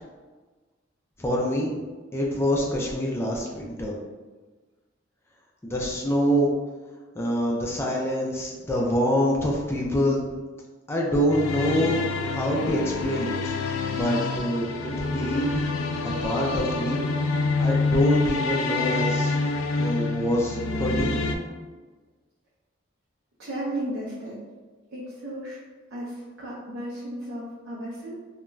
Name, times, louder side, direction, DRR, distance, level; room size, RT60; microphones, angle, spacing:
voice 1, 1.2-1.8 2.1-3.9 5.6-6.5 7.2-10.3 10.9-12.0 12.2-13.5 13.9-15.6 16.2-17.1 17.6-19.4 19.8-21.2, equal, 10° left, -2 dB, 0.3 m, -25 dB
sound 1, 11.3-21.4, left 3 dB, 90° left, 0.3 m, -27 dB
voice 2, 23.4-24.4 24.9-25.6 25.9-28.1, right 1 dB, 70° right, -7 dB, 0.5 m, -34 dB
2.4 x 2.2 x 3.0 m, 1.3 s
head